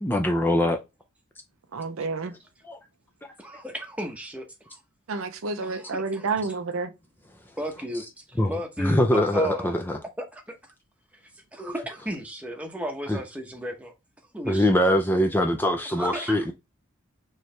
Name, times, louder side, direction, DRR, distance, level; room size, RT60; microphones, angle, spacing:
voice 1, 0.0-0.8 2.6-2.8 3.2-3.3 8.4-8.5 8.8-10.0 13.1-13.2 14.5-16.5, left 1 dB, 10° left, 0.4 m, -23 dB
voice 2, 1.7-2.3 5.1-6.9, right 4 dB, 75° right, 0.6 m, -29 dB
voice 3, 3.4-4.8 5.6-6.3 7.6-9.8 10.2-10.6 11.5-13.9 14.3-14.7 15.9-16.5, right 1 dB, 5° right, 0.8 m, -34 dB
4.5 x 3.2 x 3.2 m
head